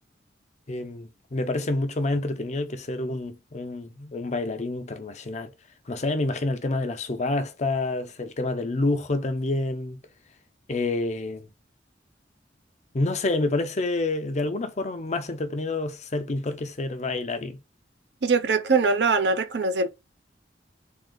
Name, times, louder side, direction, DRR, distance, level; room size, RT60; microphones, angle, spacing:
voice 1, 0.7-5.5 5.9-10.0 10.7-11.5 12.9-17.6, left 2 dB, 40° left, 0.6 m, -28 dB
voice 2, 18.2-19.9, right 4 dB, 70° right, 0.6 m, -22 dB
3.7 x 2.5 x 3.7 m
head